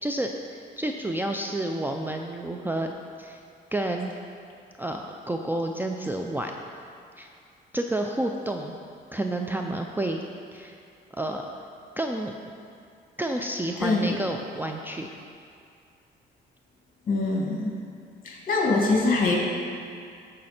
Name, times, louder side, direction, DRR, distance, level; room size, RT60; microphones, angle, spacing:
voice 1, 0.0-2.9 3.2-3.4 3.7-4.1 4.8-6.5 7.2-7.3 7.7-8.7 9.1-10.2 10.5-10.8 11.2-11.6 12.0-12.3 13.2-15.1, right 1 dB, 10° right, 3 dB, 0.5 m, -30 dB
voice 2, 13.8-14.1 17.1-17.7 18.2-19.3, left 3 dB, 45° left, -2 dB, 2.4 m, -23 dB
14.5 x 5.2 x 4.3 m, 2.4 s
cardioid pair, 90°, 20 cm